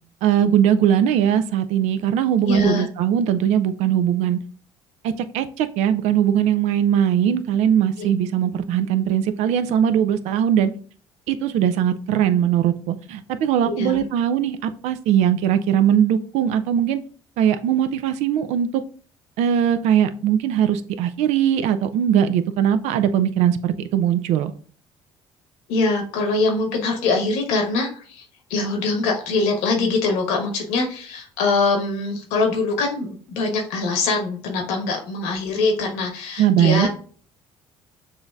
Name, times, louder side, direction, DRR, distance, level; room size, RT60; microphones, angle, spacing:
voice 1, 0.2-4.4 5.0-10.7 11.3-17.0 17.4-18.7 19.4-24.5 36.4-36.9, right 9 dB, 70° right, 11 dB, 0.4 m, -20 dB
voice 2, 2.4-2.9 8.0-8.1 13.6-14.0 25.7-36.9, left 3 dB, 80° left, 3 dB, 1.2 m, -23 dB
6.8 x 2.7 x 2.4 m, 0.42 s
hypercardioid pair, 60°, 12 cm